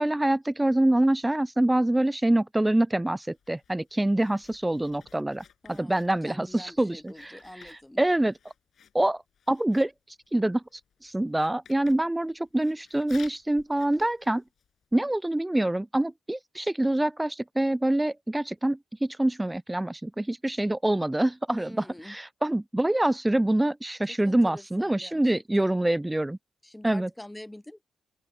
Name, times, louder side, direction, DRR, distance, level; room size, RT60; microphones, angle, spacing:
voice 1, 0.0-7.3 8.0-8.3 8.9-9.2 9.5-9.9 10.3-10.6 11.0-14.4 14.9-21.7 22.1-26.4 26.8-27.1, right 1 dB, 15° right, 0.3 m, -25 dB
Writing, 3.2-14.9, left 8 dB, 65° left, 6.6 m, -56 dB
voice 2, 5.6-8.0 21.5-22.2 24.1-25.8 26.6-27.8, left 1 dB, 10° left, 0.8 m, -45 dB
open air
hypercardioid pair, 45°, 0 cm